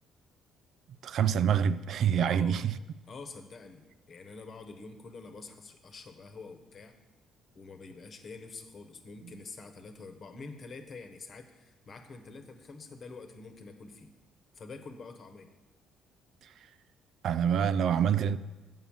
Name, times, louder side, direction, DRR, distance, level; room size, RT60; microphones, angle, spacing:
voice 1, 1.0-2.7 17.2-18.4, right 8 dB, 65° right, 0.3 m, -26 dB
voice 2, 2.2-2.6 3.1-7.0 7.5-14.1 14.5-15.5, left 4 dB, 50° left, 1.1 m, -47 dB
7.4 x 5.5 x 7.2 m
supercardioid pair, 65°, 0 cm